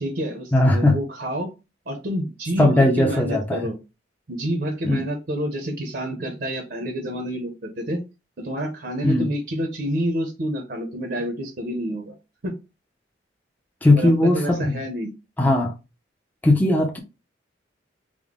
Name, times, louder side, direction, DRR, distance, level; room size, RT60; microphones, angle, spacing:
voice 1, 0.0-1.5 1.9-3.8 4.3-8.0 8.4-12.1 12.4-12.6 14.0-15.1, equal, 55° right, 0.7 m, -28 dB
voice 2, 0.5-1.0 2.6-3.7 4.8-5.0 9.0-9.3 13.8-14.8 15.4-15.7 16.4-17.0, left 1 dB, 10° left, 0.5 m, -18 dB
3.6 x 2.1 x 3.6 m
head